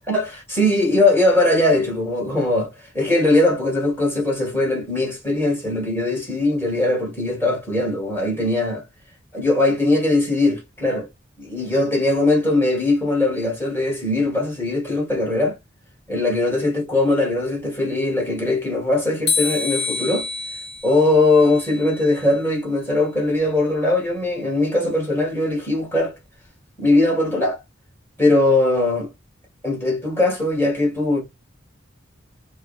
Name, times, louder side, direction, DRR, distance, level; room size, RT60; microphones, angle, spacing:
voice 1, 0.1-8.8 9.3-11.1 11.4-15.6 16.1-20.3 20.8-26.2 26.8-27.6 28.2-29.1 29.6-31.2, left 2 dB, 10° left, 1.5 m, -20 dB
sound 1, 19.3-22.4, left 4 dB, 50° left, 1.1 m, -28 dB
4.6 x 2.1 x 3.0 m
head